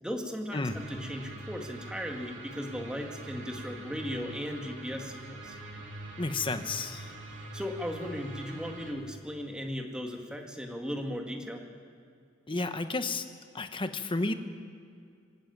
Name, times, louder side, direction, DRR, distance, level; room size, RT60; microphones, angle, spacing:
voice 1, 0.0-5.6 7.5-11.6, equal, 5° right, 2 dB, 1.9 m, -37 dB
sound 1, 0.7-8.9, right 2 dB, 75° right, 3.5 m, -44 dB
voice 2, 6.2-7.1 12.5-13.3 13.5-14.3, left 3 dB, 30° left, 9 dB, 1.0 m, -31 dB
24.5 x 11.5 x 9.2 m, 2.3 s
head